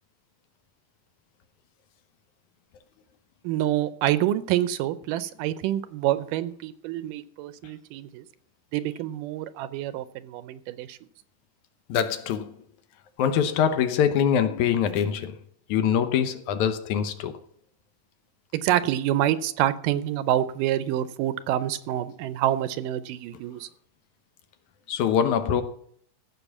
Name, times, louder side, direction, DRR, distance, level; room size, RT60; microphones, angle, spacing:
voice 1, 3.4-8.2 8.7-11.0 18.5-23.7, right 12 dB, 80° right, 2.2 m, -27 dB
voice 2, 11.9-12.6 13.2-15.4 15.7-17.3 24.9-25.6, left 8 dB, 70° left, 2.1 m, -24 dB
15.0 x 6.0 x 7.1 m
omnidirectional pair, 3.8 m